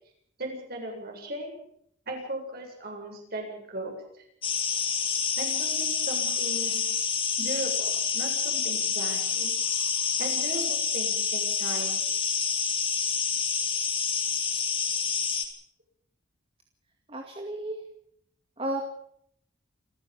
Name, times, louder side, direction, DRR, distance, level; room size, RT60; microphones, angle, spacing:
voice 1, 0.4-1.5 2.1-4.2 5.4-6.9 7.4-9.5 10.2-12.0, right 1 dB, 45° right, 2 dB, 8.0 m, -37 dB
sound 1, 4.4-15.4, left 6 dB, 25° left, 3.3 m, -28 dB
voice 2, 17.1-17.8 18.6-18.8, right 1 dB, 25° right, 3 dB, 2.2 m, -32 dB
27.5 x 15.0 x 7.3 m, 0.70 s
head